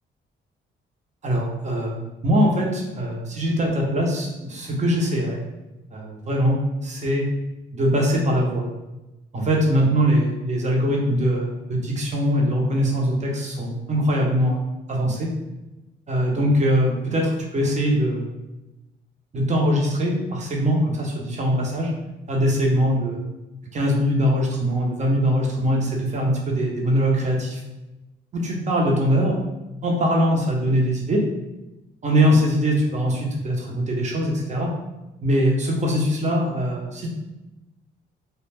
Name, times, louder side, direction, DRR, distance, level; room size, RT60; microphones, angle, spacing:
voice 1, 1.2-5.4 5.9-7.3 7.7-8.6 9.3-14.6 14.9-15.3 16.1-18.3 19.3-21.9 22.3-23.2 23.7-27.6 28.3-29.3 29.8-31.2 32.0-34.7 35.2-37.1, equal, 35° right, -1 dB, 0.7 m, -22 dB
2.2 x 2.1 x 3.3 m, 1.0 s
cardioid pair, 90°, 20 cm